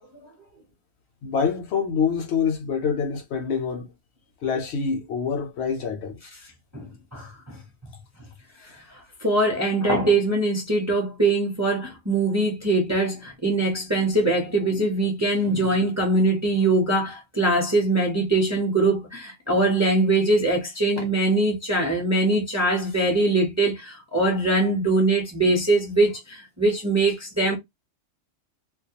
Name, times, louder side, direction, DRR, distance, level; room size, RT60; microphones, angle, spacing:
voice 1, 1.2-3.9 4.4-6.3, left 6 dB, 65° left, 0.8 m, -26 dB
voice 2, 6.7-7.6 8.6-27.5, right 2 dB, 20° right, 0.5 m, -22 dB
2.2 x 2.1 x 2.7 m
omnidirectional pair, 1.3 m